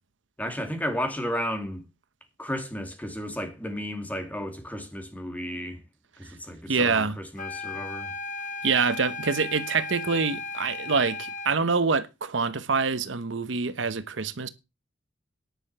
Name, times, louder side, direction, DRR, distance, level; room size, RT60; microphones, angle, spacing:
voice 1, 0.4-1.8 2.4-5.8 6.2-8.1, equal, 10° left, 2.5 m, -33 dB
voice 2, 6.7-7.2 8.6-14.5, right 4 dB, 75° right, 0.8 m, -26 dB
sound 1, 7.4-11.6, left 4 dB, 45° left, 1.2 m, -36 dB
10.5 x 6.6 x 6.7 m
head